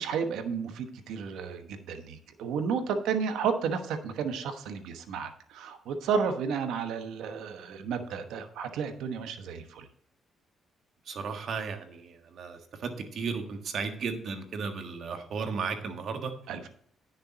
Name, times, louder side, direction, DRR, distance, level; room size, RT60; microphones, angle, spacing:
voice 1, 0.0-9.9 16.5-16.7, right 6 dB, 85° right, 7 dB, 1.1 m, -32 dB
voice 2, 11.0-16.3, right 5 dB, 60° right, 5 dB, 1.6 m, -35 dB
10.0 x 6.7 x 4.1 m, 0.64 s
cardioid pair, 90°, 0 cm